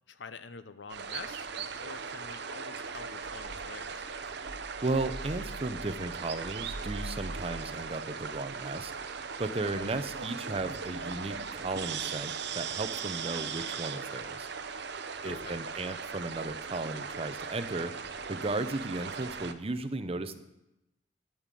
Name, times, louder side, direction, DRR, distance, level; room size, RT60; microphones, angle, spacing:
voice 1, 0.1-1.5 1.8-4.1 15.2-15.6, left 5 dB, 70° left, 12 dB, 0.7 m, -47 dB
sound 1, 0.9-19.5, right 5 dB, 65° right, 0.8 m, -38 dB
voice 2, 4.8-8.9 9.4-14.5 15.2-17.9 18.3-20.4, right 2 dB, 30° right, 10 dB, 0.7 m, -35 dB
10.0 x 8.8 x 7.5 m, 0.92 s
head